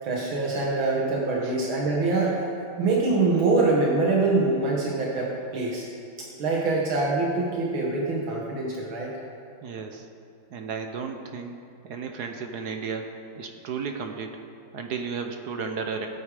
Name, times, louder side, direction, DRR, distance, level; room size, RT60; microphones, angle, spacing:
voice 1, 0.0-2.4 2.8-5.9 6.4-9.1, right 3 dB, 80° right, -3 dB, 2.1 m, -24 dB
voice 2, 9.6-10.1 10.5-11.6 11.8-13.1 13.4-14.4 14.7-16.1, right 5 dB, 60° right, 4 dB, 1.2 m, -33 dB
16.0 x 8.6 x 4.9 m, 2.4 s
omnidirectional pair, 2.2 m